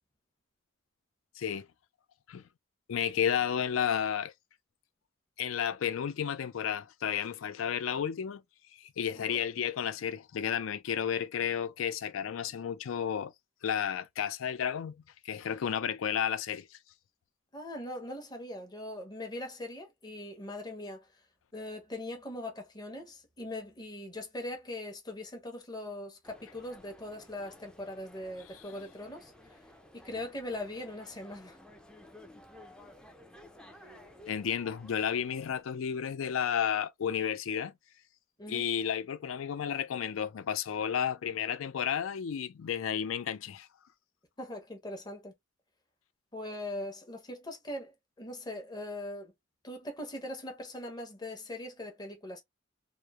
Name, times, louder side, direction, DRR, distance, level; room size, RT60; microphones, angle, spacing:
voice 1, 2.9-4.3 5.4-8.4 8.8-13.3 13.6-14.9 15.2-16.8 34.3-37.7 38.5-43.7, left 8 dB, 80° left, 0.4 m, -32 dB
voice 2, 17.5-21.1 21.5-29.6 29.9-31.6 38.4-38.7 44.4-45.3 46.3-49.3 49.6-52.4, left 1 dB, 20° left, 0.7 m, -41 dB
sound 1, 26.2-35.6, left 1 dB, 5° left, 0.3 m, -54 dB
2.9 x 2.0 x 2.3 m
head